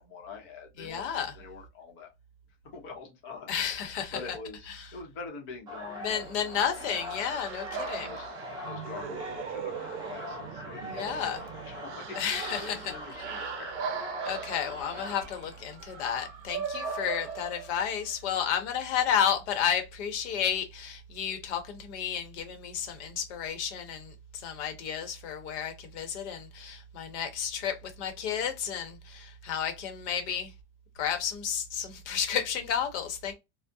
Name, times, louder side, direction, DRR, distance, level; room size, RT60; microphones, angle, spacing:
voice 1, 0.0-1.0 1.3-2.1 2.7-3.6 4.1-6.3 6.8-7.0 7.7-8.3 8.6-11.2 11.6-12.3 12.6-13.8, left 4 dB, 35° left, 0.7 m, -44 dB
voice 2, 0.8-1.3 3.5-4.2 6.0-8.1 10.9-11.4 12.1-12.9 14.2-30.5 31.0-33.3, left 8 dB, 65° left, 0.9 m, -32 dB
sound 1, 5.7-16.1, left 1 dB, 10° right, 0.4 m, -43 dB
sound 2, 7.1-18.1, right 6 dB, 75° right, 0.6 m, -39 dB
2.3 x 2.1 x 2.6 m
supercardioid pair, 155°, 36 cm